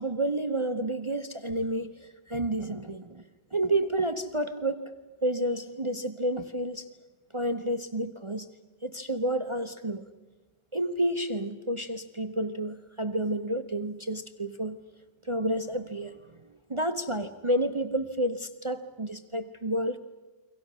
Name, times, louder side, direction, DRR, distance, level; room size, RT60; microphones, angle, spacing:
voice 1, 0.0-3.2 3.5-4.9 5.2-6.8 7.3-8.5 8.8-10.0 10.7-14.8 15.2-16.1 16.7-20.0, right 1 dB, 40° right, 9 dB, 0.4 m, -30 dB
29.5 x 23.5 x 6.3 m, 1.3 s
omnidirectional pair, 1.9 m